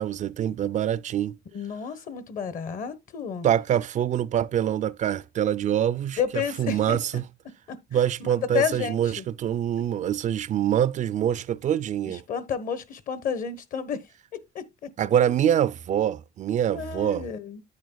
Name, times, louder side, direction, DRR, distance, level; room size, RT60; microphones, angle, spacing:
voice 1, 0.0-1.4 3.4-6.2 6.6-7.2 7.9-12.2 15.0-17.2, right 10 dB, 45° right, 0.4 m, -25 dB
voice 2, 1.5-3.5 6.2-7.0 7.7-9.2 12.0-14.0 14.3-14.9 16.7-17.6, left 7 dB, 55° left, 1.2 m, -31 dB
9.5 x 8.7 x 2.3 m
cardioid pair, 110°, 17 cm